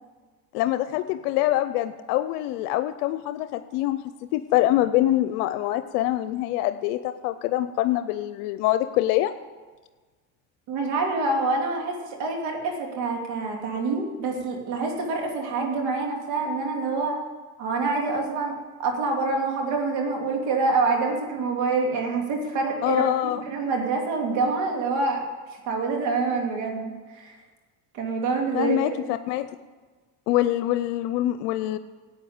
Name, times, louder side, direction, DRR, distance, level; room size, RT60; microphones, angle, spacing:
voice 1, 0.5-4.0 4.3-9.3 22.8-23.4 28.5-29.5 30.3-31.8, left 14 dB, 85° left, 11 dB, 0.6 m, -24 dB
voice 2, 10.7-17.1 17.6-18.5 18.8-25.3 25.6-27.3 27.9-29.2, right 3 dB, 75° right, 1 dB, 3.0 m, -26 dB
12.0 x 8.5 x 8.7 m, 1.4 s
supercardioid pair, 75°, 45 cm